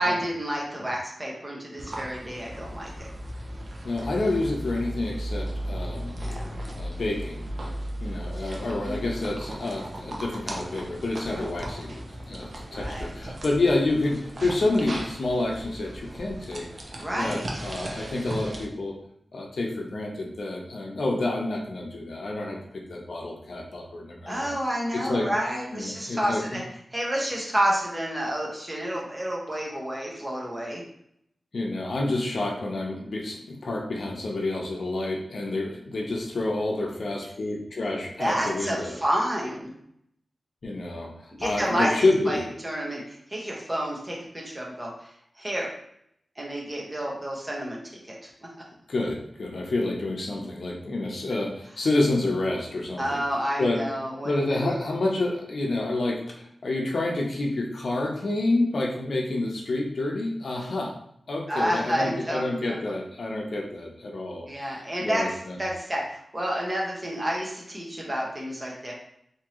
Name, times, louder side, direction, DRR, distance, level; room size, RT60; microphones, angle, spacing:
voice 1, 0.0-3.1 6.2-6.6 8.8-9.0 12.7-13.1 16.9-17.6 24.3-26.6 26.9-30.8 38.2-39.7 41.3-41.9 42.3-44.9 45.4-45.7 46.4-47.8 48.1-48.2 53.0-54.7 61.5-62.4 64.4-65.2 65.6-68.9, equal, 20° right, -3 dB, 1.0 m, -29 dB
sound 1, 1.8-18.7, right 1 dB, 50° right, 0.7 m, -36 dB
voice 2, 3.8-6.1 6.7-7.5 8.0-16.7 17.1-18.9 19.3-24.6 24.9-25.3 25.7-26.6 31.5-39.0 40.6-41.1 41.4-42.5 48.9-53.2 53.6-53.8 54.2-60.9 61.3-65.6, left 2 dB, 65° left, 0 dB, 0.7 m, -28 dB
3.6 x 2.8 x 3.0 m, 0.72 s
wide cardioid pair, 120°, 0 cm